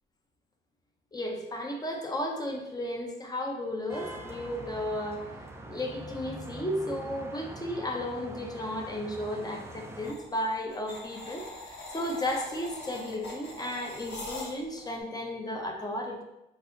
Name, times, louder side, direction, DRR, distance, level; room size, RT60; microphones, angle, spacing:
voice 1, 1.1-5.3 5.7-16.2, left 1 dB, 20° left, 2 dB, 0.7 m, -34 dB
sound 1, 3.9-10.1, right 1 dB, 10° right, 0.4 m, -43 dB
sound 2, 10.0-14.8, left 1 dB, 60° left, 1.4 m, -42 dB
4.3 x 4.0 x 2.7 m, 0.90 s
cardioid pair, 105°, 21 cm